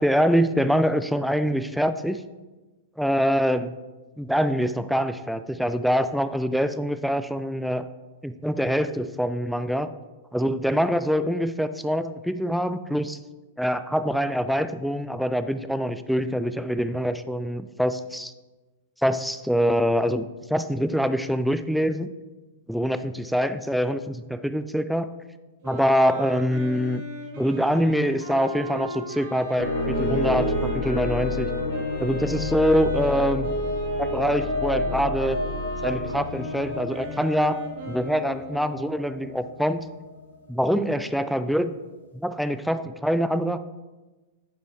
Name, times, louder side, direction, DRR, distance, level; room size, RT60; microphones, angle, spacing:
voice 1, 0.0-2.2 3.0-3.7 4.2-7.9 8.2-9.9 10.3-13.2 13.6-18.3 19.0-20.3 20.5-22.1 22.7-25.1 25.6-27.0 27.4-31.5 32.0-33.5 34.0-35.4 35.8-37.6 37.9-39.8 40.5-41.7 42.1-43.6, equal, ahead, 11 dB, 0.3 m, -24 dB
Wind instrument woodwind instrument, 25.6-39.0, right 1 dB, 60° right, 2.4 m, -35 dB
sound 1, 29.6-40.6, left 2 dB, 90° left, 1.2 m, -30 dB
9.1 x 5.1 x 3.5 m, 1.2 s
hypercardioid pair, 120°, 0 cm